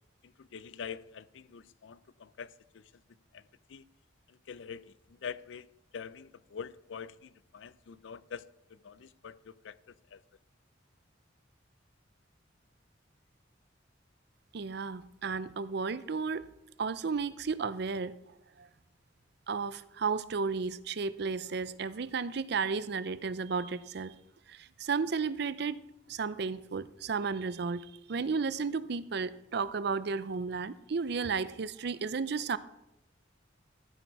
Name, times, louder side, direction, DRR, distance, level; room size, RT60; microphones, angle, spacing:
voice 1, 0.2-2.9 3.3-3.4 3.7-3.8 4.3-5.7 5.9-10.2, left 6 dB, 85° left, 0.4 m, -45 dB
voice 2, 14.5-16.5 16.8-18.2 18.6-18.7 19.5-24.1 24.5-25.8 26.1-32.6, right 5 dB, 60° right, 0.5 m, -33 dB
14.0 x 8.1 x 4.7 m
head